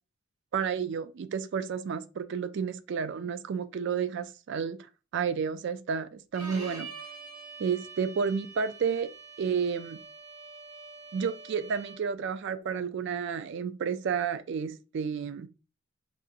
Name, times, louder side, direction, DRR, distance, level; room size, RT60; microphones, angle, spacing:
voice 1, 0.5-4.8 5.1-6.9 7.6-9.1 9.4-10.0 11.1-15.5, right 6 dB, 55° right, 0.3 m, -31 dB
Bowed string instrument, 6.3-12.2, right 4 dB, 90° right, 2.1 m, -46 dB
4.7 x 2.4 x 2.7 m
head